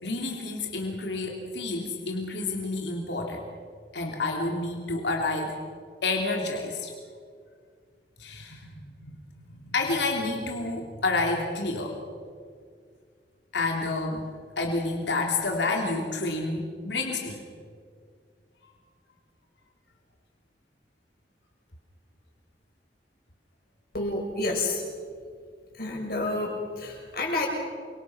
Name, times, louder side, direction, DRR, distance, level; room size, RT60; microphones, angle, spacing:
voice 1, 0.0-3.4 3.9-5.5 6.0-6.9 8.2-9.3 9.7-12.0 13.5-14.2 14.6-17.4, left 3 dB, 90° left, 1 dB, 3.2 m, -29 dB
voice 2, 23.9-24.8 25.7-27.5, left 2 dB, 60° left, 0 dB, 6.8 m, -29 dB
29.0 x 25.0 x 6.2 m, 2.1 s
head